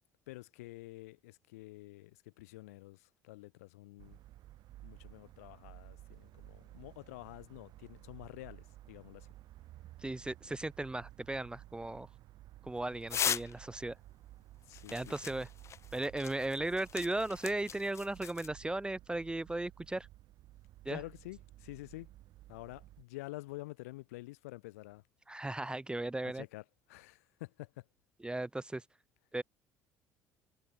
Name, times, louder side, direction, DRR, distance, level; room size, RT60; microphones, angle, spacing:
voice 1, 0.3-4.2 4.8-9.3 14.7-15.1 20.9-22.1 22.5-25.0 26.2-27.8, left 20 dB, 70° left, 2.1 m, -49 dB
sound 1, 4.0-23.0, right 15 dB, 55° right, 6.4 m, -55 dB
voice 2, 10.0-12.1 12.6-13.9 14.9-15.5 15.9-20.1 20.8-21.0 25.3-26.4 28.2-28.8 29.3-29.4, right 2 dB, 10° right, 0.9 m, -36 dB
sound 2, 13.1-13.6 14.7-18.5, left 8 dB, 35° left, 0.4 m, -39 dB
figure-of-eight pair, 55°, 8 cm